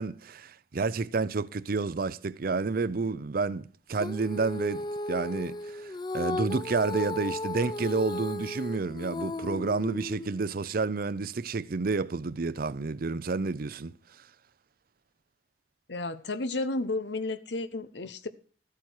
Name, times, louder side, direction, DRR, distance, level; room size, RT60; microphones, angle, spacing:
voice 1, 0.0-13.9, right 4 dB, 55° right, 0.6 m, -30 dB
Female singing, 4.0-10.5, left 2 dB, 25° left, 0.6 m, -35 dB
voice 2, 15.9-18.3, left 2 dB, 80° left, 1.0 m, -32 dB
13.5 x 8.5 x 4.7 m
head